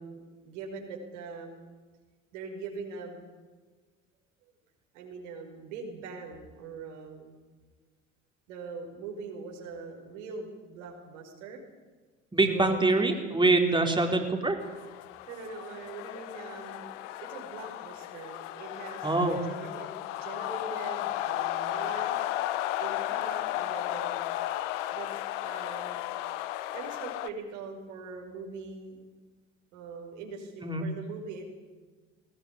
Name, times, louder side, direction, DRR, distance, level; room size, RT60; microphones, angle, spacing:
voice 1, 0.0-1.6 2.3-3.2 4.9-7.4 8.5-11.6 12.5-12.9 13.7-14.0 15.3-19.9 20.2-22.2 22.8-24.2 24.9-25.1 25.4-26.1 26.7-29.1 29.7-31.4, right 4 dB, 75° right, 1 dB, 5.4 m, -42 dB
voice 2, 12.3-14.6 19.0-19.4 30.6-30.9, right 2 dB, 10° right, 3 dB, 4.1 m, -24 dB
sound 1, 14.6-27.3, left 14 dB, 75° left, 1.1 m, -34 dB
20.5 x 19.5 x 9.7 m, 1.4 s
hypercardioid pair, 60°, 37 cm